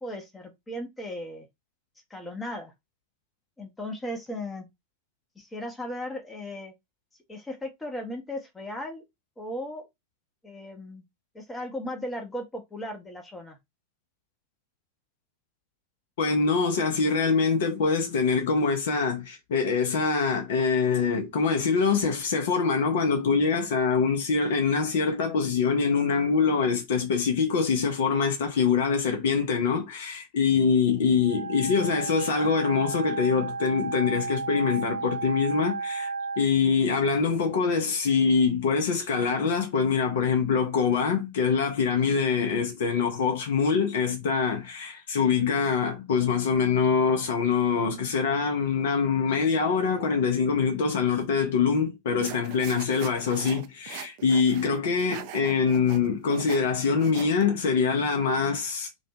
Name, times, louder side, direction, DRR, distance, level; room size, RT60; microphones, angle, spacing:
voice 1, 0.0-1.5 2.1-2.7 3.6-4.7 5.4-6.7 7.3-9.0 9.4-9.8 10.4-11.0 11.3-13.6, left 1 dB, 10° left, 0.7 m, -36 dB
voice 2, 16.2-58.9, left 5 dB, 55° left, 0.6 m, -24 dB
Wind instrument woodwind instrument, 31.2-36.5, right 4 dB, 80° right, 0.9 m, -33 dB
sound 1, 52.2-57.4, right 12 dB, 45° right, 0.3 m, -41 dB
2.5 x 2.2 x 2.8 m
figure-of-eight pair, 90°, 0 cm